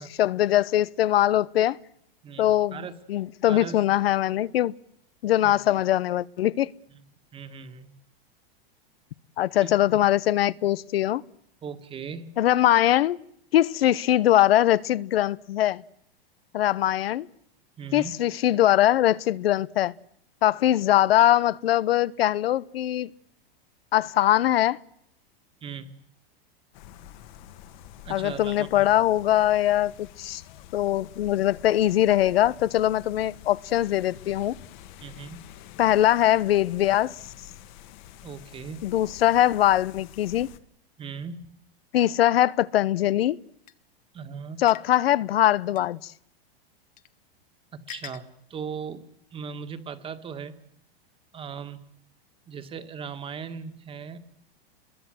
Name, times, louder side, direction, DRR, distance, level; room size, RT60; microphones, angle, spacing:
voice 1, 0.2-1.8 2.4-4.7 5.2-6.7 9.4-11.2 12.4-13.2 13.5-15.8 16.5-17.3 17.9-19.9 20.4-23.1 23.9-24.8 28.1-30.4 30.7-34.6 35.8-37.1 38.8-40.5 41.9-43.4 44.6-46.1, left 13 dB, 85° left, 1.0 m, -22 dB
voice 2, 2.2-3.0 3.5-3.9 5.4-5.8 6.9-7.0 7.3-7.9 9.6-9.7 11.6-12.4 17.8-18.2 25.6-25.9 28.0-28.9 35.0-35.5 38.2-38.8 41.0-41.5 44.1-44.6 47.9-49.0 49.3-50.6 51.3-51.8 52.5-54.2, right 6 dB, 20° right, 1.8 m, -38 dB
sound 1, 26.7-40.6, left 11 dB, 50° left, 1.9 m, -48 dB
sound 2, 43.7-43.8 44.7-44.9 45.8-45.9 47.0-47.1 47.9-48.2, left 15 dB, 30° left, 1.0 m, -42 dB
28.0 x 22.0 x 7.8 m
supercardioid pair, 150°, 29 cm